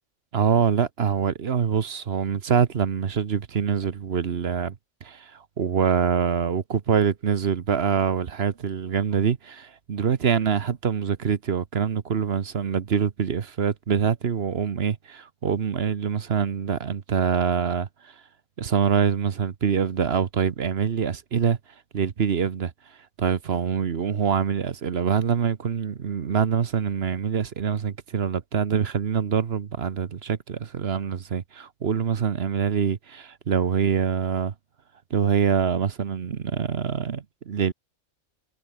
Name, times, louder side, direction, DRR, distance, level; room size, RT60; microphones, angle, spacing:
voice 1, 0.3-4.7 5.0-5.3 5.6-17.9 18.6-21.6 21.9-22.7 23.2-34.5 35.1-37.7, right 7 dB, 55° right, 1.2 m, -25 dB
omnidirectional pair, 1.3 m